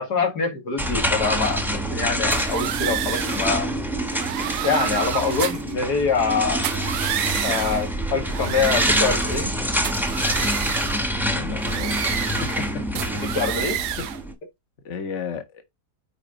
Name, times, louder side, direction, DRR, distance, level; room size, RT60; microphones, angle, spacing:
voice 1, 0.0-3.7 4.6-6.7 7.4-9.5 13.4-13.8, left 5 dB, 65° left, 2.6 m, -24 dB
sound 1, 0.8-14.3, equal, ahead, 1.2 m, -26 dB
sound 2, 2.3-3.5 4.1-5.7 6.5-7.9 8.3-9.5 9.8-11.1 11.6-12.7 13.0-14.2, right 12 dB, 75° right, 1.2 m, -30 dB
voice 2, 11.1-12.3 14.0-14.1 14.8-15.6, left 6 dB, 45° left, 1.7 m, -34 dB
9.5 x 5.0 x 3.9 m
omnidirectional pair, 1.9 m